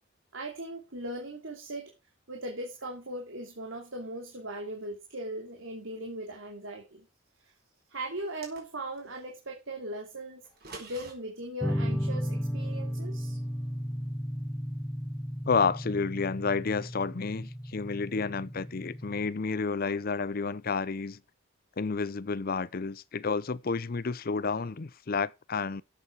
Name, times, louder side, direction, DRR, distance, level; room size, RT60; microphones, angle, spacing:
voice 1, 0.3-1.9 2.3-7.1 7.9-10.4 10.8-13.4, right 1 dB, 70° right, 2.8 m, -39 dB
sound 1, 8.2-9.1 10.4-11.1, right 3 dB, 50° right, 5.2 m, -46 dB
sound 2, 11.6-19.3, equal, ahead, 1.6 m, -34 dB
voice 2, 15.5-21.2 21.8-25.8, left 4 dB, 45° left, 0.6 m, -30 dB
13.0 x 8.3 x 4.6 m
head